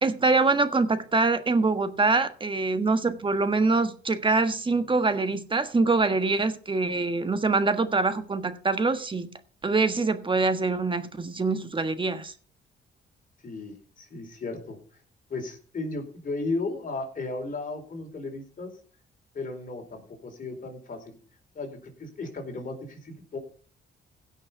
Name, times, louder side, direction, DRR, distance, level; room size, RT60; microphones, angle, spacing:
voice 1, 0.0-9.3 9.6-12.3, right 3 dB, 25° right, 1.4 m, -24 dB
voice 2, 13.4-15.0 15.3-18.7 19.3-21.2 21.5-23.4, left 3 dB, 45° left, 4.6 m, -35 dB
16.5 x 6.5 x 5.7 m
cardioid pair, 90°, 20 cm